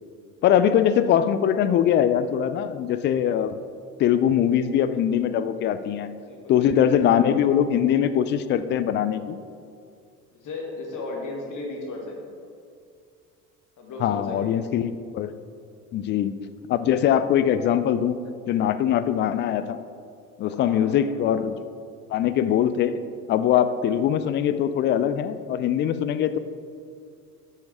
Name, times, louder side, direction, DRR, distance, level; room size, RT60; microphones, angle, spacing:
voice 1, 0.4-3.6 4.0-6.1 6.5-9.4 14.0-15.4 15.9-16.4 16.7-18.2 18.5-19.8 20.4-21.7 22.1-22.9 23.3-26.4, left 9 dB, 25° left, 12 dB, 0.3 m, -22 dB
voice 2, 6.3-7.3 10.3-12.3 13.8-14.6 20.4-21.0, left 2 dB, 40° left, 0 dB, 2.0 m, -36 dB
9.1 x 6.2 x 4.7 m, 2.3 s
figure-of-eight pair, 65°, 45 cm